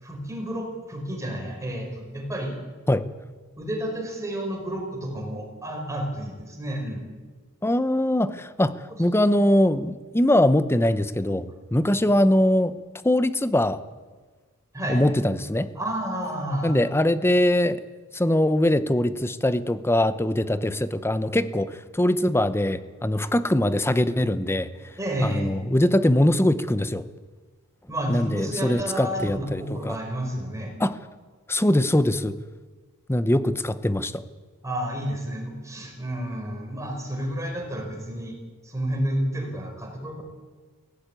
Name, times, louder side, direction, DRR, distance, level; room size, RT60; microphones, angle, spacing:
voice 1, 0.0-2.5 3.6-7.1 14.7-15.0 15.8-16.8 25.0-25.5 27.9-30.8 34.6-38.4 38.6-40.2, right 1 dB, 15° right, 1 dB, 5.2 m, -30 dB
voice 2, 7.6-12.8 13.0-13.8 14.9-15.7 16.6-17.8 18.1-24.9 25.2-27.1 28.1-30.0 30.8-30.9 31.5-32.4 33.1-34.2, left 1 dB, 10° left, 13 dB, 0.8 m, -22 dB
18.0 x 17.0 x 9.2 m, 1.4 s
head